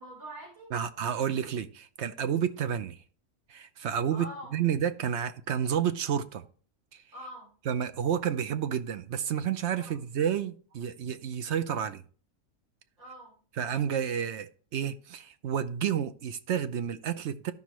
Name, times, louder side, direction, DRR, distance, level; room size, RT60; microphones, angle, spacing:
voice 1, 0.0-0.7 4.1-4.5 7.1-7.5 9.8-10.0 13.0-13.4, equal, 80° right, 4.1 m, -44 dB
voice 2, 0.7-3.0 3.5-4.3 4.5-6.4 6.9-7.0 7.7-12.0 13.6-17.5, right 8 dB, 60° right, 0.9 m, -30 dB
13.0 x 5.6 x 3.0 m
omnidirectional pair, 1.4 m